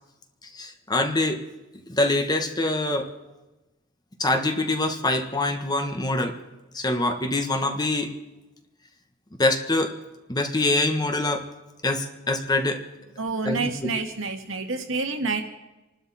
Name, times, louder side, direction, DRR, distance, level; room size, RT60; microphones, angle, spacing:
voice 1, 0.5-1.4 1.9-3.1 4.2-6.3 6.7-8.1 9.4-9.9 10.3-11.5 11.8-12.8 13.4-13.7, left 2 dB, 20° left, 5 dB, 1.4 m, -24 dB
voice 2, 13.2-15.4, right 3 dB, 80° right, 5 dB, 2.0 m, -28 dB
28.0 x 12.0 x 4.2 m, 1.0 s
head